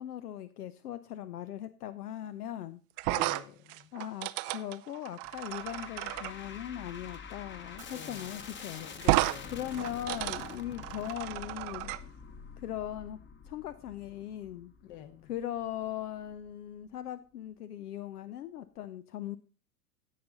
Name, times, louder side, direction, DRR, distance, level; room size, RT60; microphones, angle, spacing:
voice 1, 0.0-2.8 3.9-8.9 9.5-11.9 12.6-13.2 13.4-14.7 15.2-19.4, left 11 dB, 80° left, 0.6 m, -39 dB
sound 1, 3.0-6.3 7.8-7.9 8.2-8.3 9.0-9.4 9.7-12.0, right 19 dB, 30° right, 0.4 m, -32 dB
voice 2, 3.1-3.9 7.9-8.3 8.7-9.6 14.8-15.3, left 10 dB, 55° left, 1.3 m, -47 dB
sound 2, 5.2-16.5, left 6 dB, 25° left, 1.1 m, -47 dB
16.0 x 5.7 x 3.9 m
hypercardioid pair, 95°, 46 cm